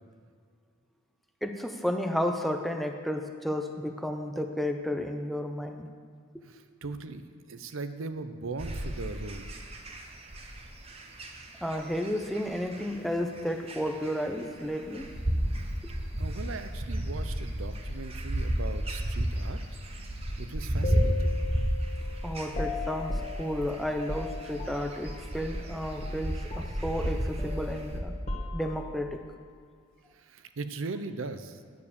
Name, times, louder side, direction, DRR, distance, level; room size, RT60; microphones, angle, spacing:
voice 1, 1.4-5.9 6.3-6.4 11.6-15.1 15.8-15.9 22.2-28.2 28.5-29.2, equal, ahead, 5 dB, 0.5 m, -32 dB
voice 2, 6.4-9.5 15.4-19.6 20.0-21.3 30.1-31.6, right 3 dB, 70° right, 9 dB, 0.6 m, -39 dB
sound 1, 8.6-28.0, right 1 dB, 30° right, 0.9 m, -33 dB
sound 2, 20.8-25.3 25.5-25.7 26.0-29.0, left 2 dB, 35° left, 1.5 m, -36 dB
9.7 x 7.1 x 6.9 m, 2.1 s
head